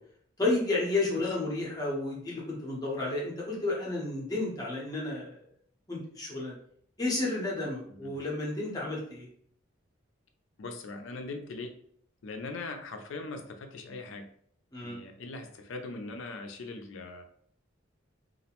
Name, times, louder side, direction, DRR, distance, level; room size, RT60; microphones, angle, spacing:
voice 1, 0.4-5.4 5.9-6.5 7.0-9.3 14.7-15.0, left 2 dB, 20° left, -4 dB, 0.7 m, -31 dB
voice 2, 10.6-11.7 12.2-14.3 14.8-17.2, left 3 dB, 65° left, 5 dB, 0.4 m, -40 dB
2.4 x 2.0 x 2.8 m, 0.63 s
head